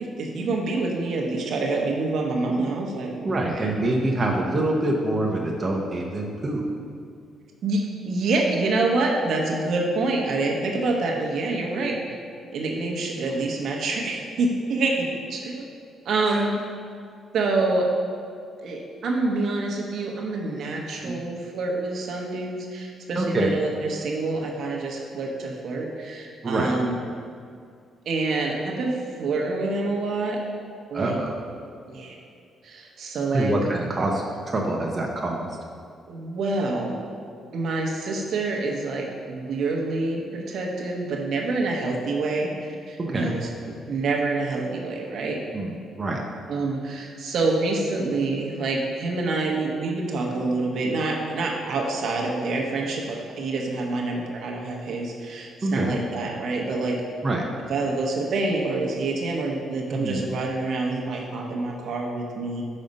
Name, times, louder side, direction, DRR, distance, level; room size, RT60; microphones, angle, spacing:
voice 1, 0.0-3.8 7.6-12.2 12.5-15.7 16.0-16.6 17.3-17.9 18.6-27.0 28.1-30.4 30.9-31.2 31.9-32.1 32.6-33.5 36.1-37.0 37.5-42.5 42.9-45.4 46.5-57.0 57.7-62.6, right 3 dB, 65° right, -1 dB, 0.9 m, -27 dB
voice 2, 3.2-6.6 11.8-12.0 16.3-16.5 21.0-21.2 23.2-23.5 26.4-26.8 30.9-31.4 33.3-35.5 43.0-43.4 45.5-46.2 55.6-56.0 57.2-57.4 59.9-60.3, right 2 dB, 30° right, -1 dB, 0.7 m, -26 dB
5.3 x 4.1 x 5.2 m, 2.3 s
cardioid pair, 90°, 0 cm